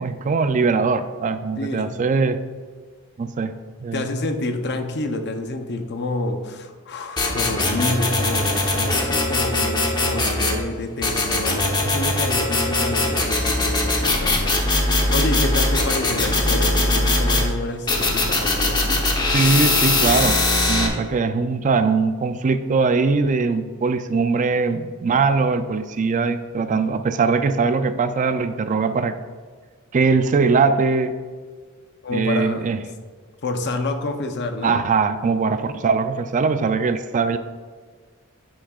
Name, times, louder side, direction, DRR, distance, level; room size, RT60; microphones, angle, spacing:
voice 1, 0.0-2.4 3.2-3.5 3.8-4.1 19.3-20.4 20.7-29.1 29.9-31.1 32.1-32.8 34.6-37.4, right 4 dB, 35° right, 10 dB, 0.3 m, -21 dB
voice 2, 1.6-1.9 3.9-14.6 15.1-19.0 32.0-32.7 33.4-34.8, left 2 dB, 50° left, 6 dB, 0.7 m, -28 dB
sound 1, 7.2-10.6 11.0-17.5 17.9-20.9, left 2 dB, 20° left, 0.9 m, -21 dB
9.7 x 6.2 x 2.4 m, 1.5 s
head